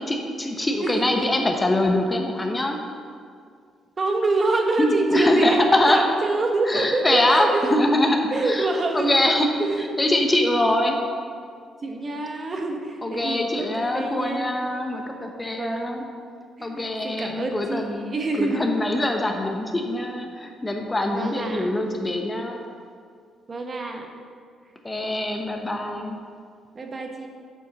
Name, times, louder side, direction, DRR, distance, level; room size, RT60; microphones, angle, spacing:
voice 1, 0.1-2.8 4.8-6.0 6.7-8.7 8.9-9.5 10.0-11.0 13.0-16.1 16.6-18.0 18.4-22.6 24.8-26.2, left 1 dB, 20° left, 3 dB, 0.8 m, -23 dB
voice 2, 4.0-7.8 8.3-9.1 9.6-9.9 11.8-14.7 15.5-16.0 16.6-18.6 21.1-21.7 23.5-24.1 26.7-27.3, right 3 dB, 35° right, 3 dB, 0.9 m, -26 dB
8.2 x 4.3 x 5.8 m, 2.2 s
cardioid pair, 90°, 0 cm